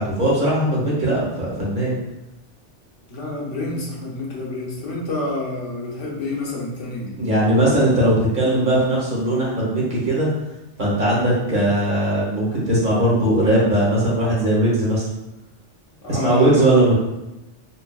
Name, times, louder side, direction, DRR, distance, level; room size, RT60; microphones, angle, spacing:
voice 1, 0.0-1.9 7.2-10.3 10.8-15.0 16.1-17.0, right 1 dB, 45° right, -7 dB, 1.2 m, -19 dB
voice 2, 3.1-7.4 16.0-16.7, left 2 dB, 90° left, -4 dB, 1.3 m, -28 dB
4.2 x 2.6 x 2.3 m, 0.95 s
omnidirectional pair, 1.2 m